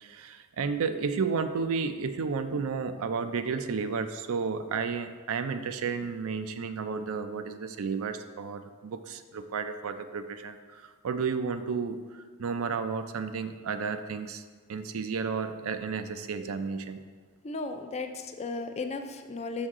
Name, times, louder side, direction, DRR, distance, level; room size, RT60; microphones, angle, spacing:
voice 1, 0.0-14.4 14.7-17.0, right 5 dB, 65° right, 9 dB, 0.4 m, -32 dB
voice 2, 17.4-19.7, left 3 dB, 30° left, 7 dB, 0.4 m, -35 dB
6.3 x 5.4 x 3.6 m, 1.5 s
head